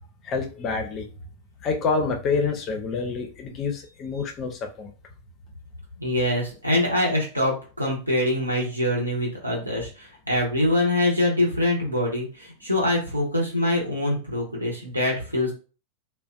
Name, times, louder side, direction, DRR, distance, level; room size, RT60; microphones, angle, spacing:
voice 1, 0.2-1.1 1.6-4.9, left 4 dB, 30° left, 3 dB, 0.5 m, -27 dB
voice 2, 6.0-15.5, left 1 dB, 85° right, -2 dB, 0.9 m, -24 dB
2.4 x 2.1 x 2.4 m, 0.35 s
figure-of-eight pair, 90°, 0 cm